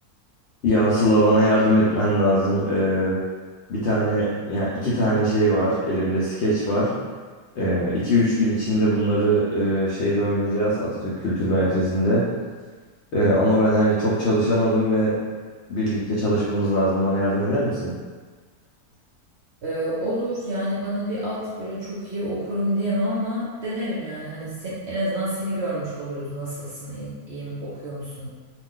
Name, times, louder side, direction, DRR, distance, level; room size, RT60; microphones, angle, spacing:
voice 1, 0.6-3.2 3.7-6.9 7.6-12.2 13.1-15.1 15.7-17.9, equal, 65° left, -7 dB, 0.7 m, -21 dB
voice 2, 19.6-28.3, equal, 60° right, -7 dB, 0.7 m, -28 dB
2.4 x 2.4 x 3.6 m, 1.4 s
omnidirectional pair, 1.6 m